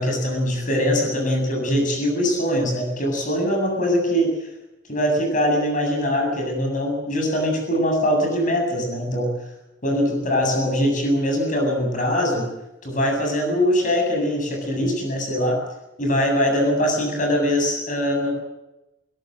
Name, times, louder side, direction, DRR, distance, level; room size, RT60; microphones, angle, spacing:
voice 1, 0.0-4.3 4.9-9.3 9.8-12.5 12.8-15.6 16.0-18.3, equal, 40° left, 3 dB, 7.8 m, -22 dB
22.5 x 17.0 x 7.9 m, 0.95 s
head